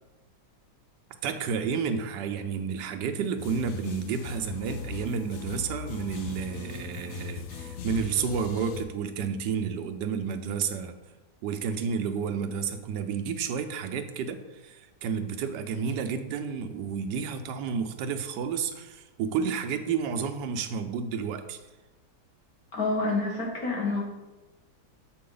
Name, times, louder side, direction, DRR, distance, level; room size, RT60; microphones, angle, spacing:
voice 1, 1.2-10.9 11.4-21.6, right 6 dB, 85° right, 8 dB, 1.2 m, -31 dB
sound 1, 3.4-8.8, left 6 dB, 75° left, 0.6 m, -39 dB
voice 2, 22.7-24.0, left 3 dB, 60° left, -1 dB, 1.6 m, -28 dB
7.5 x 4.3 x 3.8 m, 1.1 s
omnidirectional pair, 1.8 m